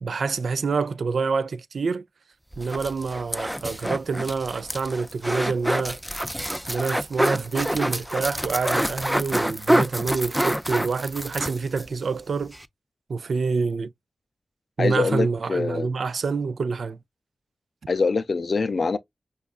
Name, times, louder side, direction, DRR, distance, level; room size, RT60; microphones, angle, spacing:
voice 1, 0.0-2.0 2.6-6.0 6.7-12.5 13.1-13.9 14.8-17.0, right 4 dB, 80° right, 0.3 m, -27 dB
sound 1, 2.5-11.9 12.2-12.3 12.5-12.7, equal, 5° right, 0.4 m, -27 dB
voice 2, 14.8-15.9 17.9-19.0, left 4 dB, 65° left, 0.4 m, -24 dB
5.2 x 2.3 x 2.3 m
cardioid pair, 40°, 0 cm